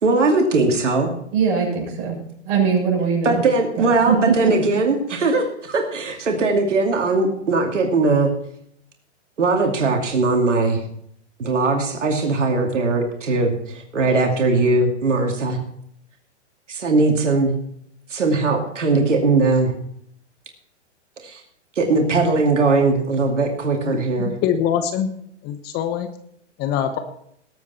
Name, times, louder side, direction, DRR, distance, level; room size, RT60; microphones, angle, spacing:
voice 1, 0.0-1.1 3.2-8.3 9.4-10.8 11.4-15.6 16.7-17.5 18.1-19.7 21.2-21.4 21.8-24.3, right 3 dB, 80° right, 2 dB, 2.6 m, -19 dB
voice 2, 1.3-2.2 2.4-3.4 3.8-4.5, right 6 dB, 40° right, -1 dB, 6.6 m, -21 dB
voice 3, 23.8-25.1 25.4-26.1 26.6-27.0, left 9 dB, 25° left, 9 dB, 1.0 m, -23 dB
19.5 x 8.3 x 4.3 m, 0.70 s
hypercardioid pair, 125°, 36 cm